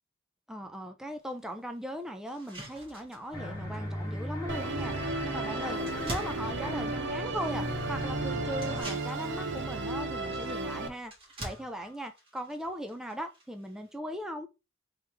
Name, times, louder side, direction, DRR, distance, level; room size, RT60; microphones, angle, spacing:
voice 1, 0.5-5.0 5.2-11.1 11.4-14.5, equal, 5° right, 0.3 m, -39 dB
sound 1, 1.2-1.3 1.8-1.9 2.3-13.9, right 1 dB, 30° right, 1.5 m, -47 dB
sound 2, 3.3-8.8, left 1 dB, 15° left, 1.4 m, -38 dB
Musical instrument, 4.5-10.9, right 2 dB, 60° right, 0.6 m, -34 dB
3.5 x 3.0 x 3.3 m
head